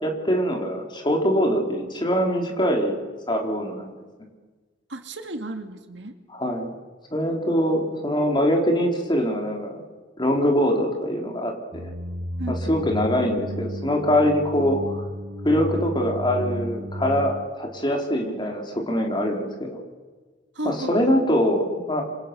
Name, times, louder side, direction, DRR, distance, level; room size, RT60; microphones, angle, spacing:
voice 1, 0.0-3.0 3.3-3.9 6.3-6.7 7.1-9.8 10.2-11.9 12.5-15.0 15.4-19.8 20.6-22.0, equal, 25° left, 2 dB, 3.9 m, -23 dB
voice 2, 4.9-6.1 12.4-12.7 20.6-21.2, right 1 dB, 65° right, 6 dB, 2.3 m, -33 dB
sound 1, 11.7-17.5, equal, 90° right, 3.2 m, -32 dB
26.5 x 26.5 x 6.9 m, 1.4 s
head